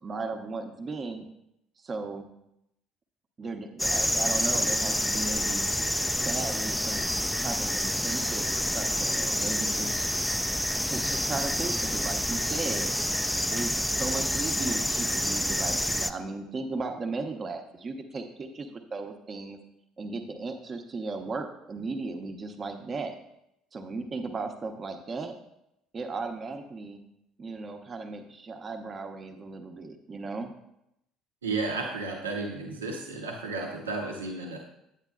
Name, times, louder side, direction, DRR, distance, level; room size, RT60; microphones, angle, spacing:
voice 1, 0.0-1.3 1.8-2.3 3.4-5.7 6.2-7.1 7.4-10.1 10.8-13.0 13.5-19.6 20.0-23.2 23.7-25.4 25.9-27.0 27.4-30.5, right 3 dB, 35° right, 6 dB, 0.9 m, -36 dB
sound 1, 3.8-16.1, equal, 5° left, 0.4 m, -28 dB
voice 2, 31.4-34.6, right 3 dB, 80° right, 1 dB, 0.8 m, -33 dB
9.1 x 8.8 x 2.4 m, 0.84 s
figure-of-eight pair, 55°, 0 cm